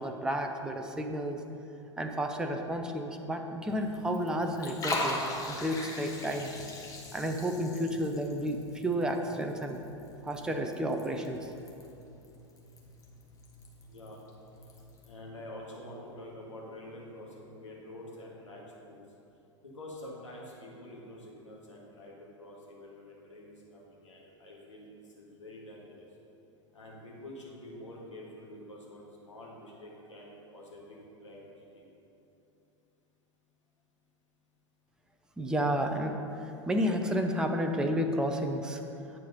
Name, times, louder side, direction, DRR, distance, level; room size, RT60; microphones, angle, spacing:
voice 1, 0.0-1.4 2.0-6.5 7.1-9.8 10.2-11.5 35.4-38.8, equal, 5° right, 4 dB, 0.5 m, -31 dB
Liquid, 3.7-15.1, left 2 dB, 20° left, 1.2 m, -41 dB
voice 2, 13.9-14.2 15.1-19.0 19.6-26.1 26.7-31.8, left 1 dB, 75° left, -3 dB, 1.7 m, -47 dB
8.8 x 4.7 x 5.4 m, 2.9 s
figure-of-eight pair, 90°, 16 cm